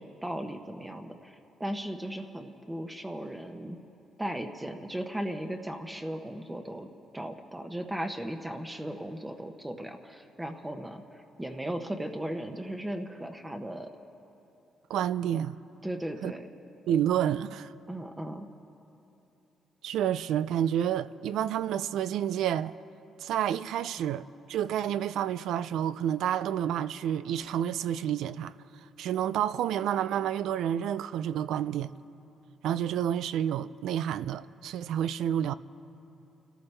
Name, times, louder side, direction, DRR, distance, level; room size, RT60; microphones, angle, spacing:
voice 1, 0.0-3.8 4.2-6.9 7.1-13.9 15.8-16.5 17.9-18.5, right 1 dB, 10° right, 0.9 m, -37 dB
voice 2, 14.9-15.6 16.2-16.3 16.9-17.7 19.8-22.7 23.2-28.5 29.0-31.9 32.6-35.5, right 10 dB, 80° right, 0.3 m, -29 dB
29.0 x 14.0 x 3.3 m
cardioid pair, 90°, 0 cm